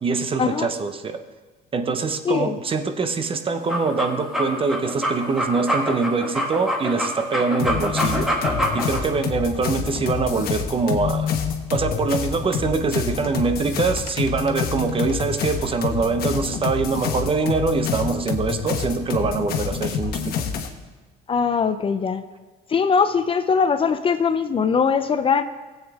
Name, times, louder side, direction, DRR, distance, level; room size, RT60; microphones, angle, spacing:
voice 1, 0.0-1.2 1.7-8.3 8.7-11.3 11.7-20.3, right 4 dB, 30° right, 8 dB, 0.8 m, -24 dB
voice 2, 2.2-2.6 21.3-22.2 22.7-25.4, left 6 dB, 35° left, 11 dB, 0.5 m, -21 dB
sound 1, 3.5-9.0, equal, 5° right, 2.0 m, -25 dB
sound 2, 7.6-20.7, left 7 dB, 65° left, 1.1 m, -27 dB
16.0 x 8.1 x 3.5 m, 1.3 s
cardioid pair, 110°, 17 cm